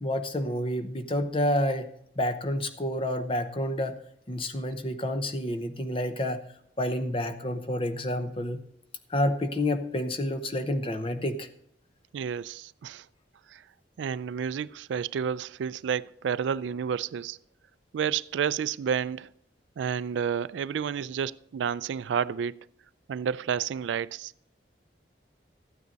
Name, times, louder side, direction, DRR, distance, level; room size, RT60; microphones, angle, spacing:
voice 1, 0.0-1.9 2.2-4.0 4.3-6.4 6.8-8.6 9.1-11.5, left 1 dB, 30° left, 0.8 m, -29 dB
voice 2, 12.1-13.0 13.5-13.6 14.0-17.4 17.9-19.3 19.8-22.6 23.1-24.3, right 7 dB, 85° right, 0.3 m, -30 dB
14.0 x 9.4 x 4.0 m
head